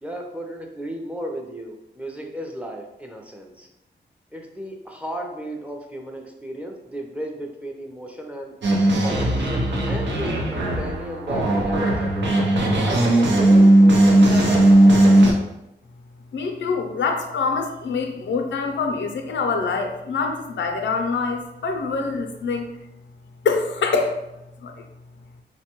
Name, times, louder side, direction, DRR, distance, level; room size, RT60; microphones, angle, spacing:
voice 1, 0.0-3.7 4.3-8.6 9.0-12.3 12.8-15.1, equal, 5° right, 1 dB, 0.5 m, -34 dB
sound 1, 8.6-15.3, right 1 dB, 75° right, 0.6 m, -17 dB
voice 2, 16.3-22.6 23.4-24.2 24.6-24.7, left 4 dB, 85° left, 4 dB, 0.4 m, -25 dB
3.3 x 2.1 x 2.9 m, 0.89 s
wide cardioid pair, 80°, 19 cm